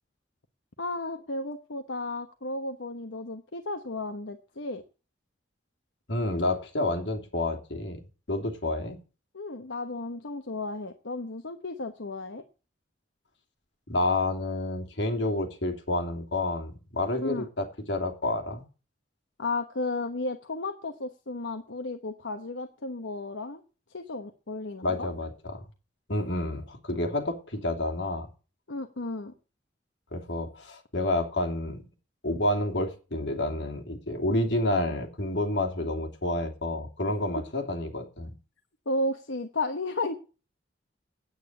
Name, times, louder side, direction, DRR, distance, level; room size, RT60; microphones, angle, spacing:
voice 1, 0.8-4.8 9.3-12.4 17.2-17.5 19.4-23.6 23.9-25.1 28.7-29.3 38.9-40.1, left 2 dB, 85° left, 6 dB, 1.1 m, -33 dB
voice 2, 6.1-8.0 8.3-9.0 13.9-18.6 24.8-25.6 26.1-28.3 30.1-31.8 32.2-38.3, left 2 dB, 70° left, 2 dB, 3.0 m, -29 dB
9.3 x 9.1 x 8.1 m, 0.35 s
head